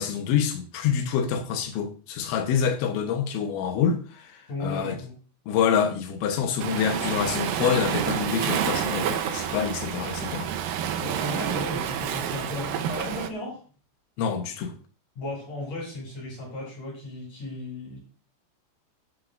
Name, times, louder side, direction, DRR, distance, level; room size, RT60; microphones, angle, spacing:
voice 1, 0.0-5.0 5.5-10.5 14.2-14.7, left 7 dB, 75° left, 3.4 m, -26 dB
voice 2, 4.5-5.1 11.0-13.6 15.2-18.0, left 2 dB, 40° left, 8.7 m, -35 dB
Waves surf, 6.6-13.3, right 9 dB, 85° right, 2.0 m, -29 dB
13.5 x 11.5 x 2.6 m
omnidirectional pair, 5.4 m